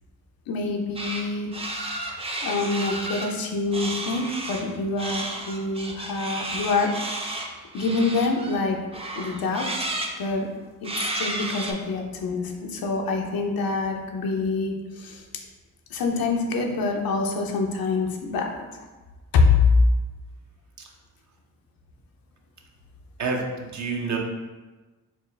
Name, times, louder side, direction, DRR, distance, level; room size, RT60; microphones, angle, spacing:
voice 1, 0.5-6.9 7.3-7.4 7.7-8.8 9.2-9.9 10.2-10.5 10.8-15.3 15.9-18.5 19.3-19.8, left 4 dB, 85° left, 2 dB, 0.6 m, -26 dB
sound 1, 1.0-1.3 1.5-3.3 3.7-4.6 5.0-8.6 8.9-10.1 10.8-11.7, right 2 dB, 15° right, 0.5 m, -32 dB
voice 2, 23.2-24.2, right 4 dB, 55° right, 1 dB, 0.7 m, -28 dB
4.5 x 2.3 x 3.2 m, 1.2 s
cardioid pair, 80°, 34 cm